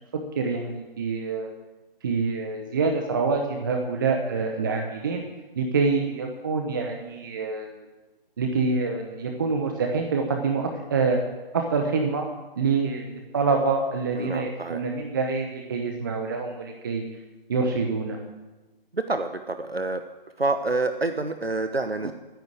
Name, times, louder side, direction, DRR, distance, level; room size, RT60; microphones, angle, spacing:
voice 1, 0.4-1.5 2.0-5.2 5.6-7.9 8.4-11.2 11.5-12.3 12.6-17.0 17.5-18.2, right 4 dB, 20° right, 3 dB, 0.9 m, -26 dB
voice 2, 14.2-14.8 18.9-20.0 20.4-22.1, right 3 dB, 85° right, 8 dB, 1.1 m, -27 dB
13.5 x 9.9 x 7.9 m, 1.1 s
figure-of-eight pair, 150°, 30 cm